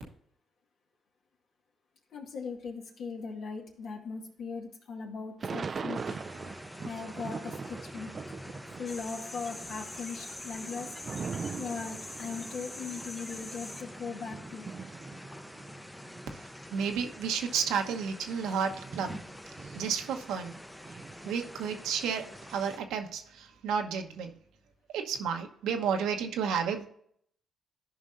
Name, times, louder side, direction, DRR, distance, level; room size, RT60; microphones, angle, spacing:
voice 1, 2.1-6.2 6.8-8.1 8.8-10.9 11.6-14.7, left 5 dB, 75° left, 2.1 m, -39 dB
Thunder / Rain, 5.4-9.0 9.3-16.4 17.0-17.1 17.3-20.5 20.8-22.6, right 5 dB, 45° right, 0.3 m, -42 dB
sound 1, 5.9-22.8, left 1 dB, 5° left, 0.6 m, -47 dB
sound 2, 8.9-13.8, left 2 dB, 25° left, 1.5 m, -44 dB
voice 2, 16.3-19.2 19.5-20.6 20.9-24.3 24.9-26.9, right 7 dB, 85° right, 1.0 m, -32 dB
13.5 x 5.3 x 2.6 m
supercardioid pair, 70°, 0 cm